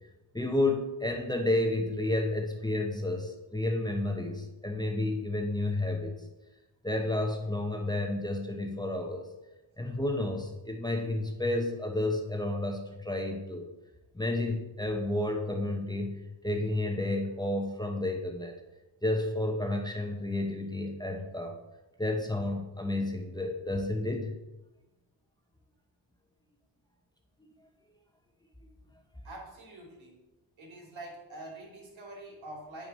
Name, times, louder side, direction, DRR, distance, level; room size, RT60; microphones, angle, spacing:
voice 1, 0.3-6.2 6.8-9.3 9.8-13.7 14.1-18.5 19.0-21.6 22.0-24.3, left 1 dB, 10° left, 2 dB, 1.0 m, -31 dB
voice 2, 29.2-30.2 30.6-32.9, right 1 dB, 75° right, -1 dB, 3.1 m, -45 dB
8.9 x 6.0 x 5.4 m, 1.0 s
wide cardioid pair, 115°, 47 cm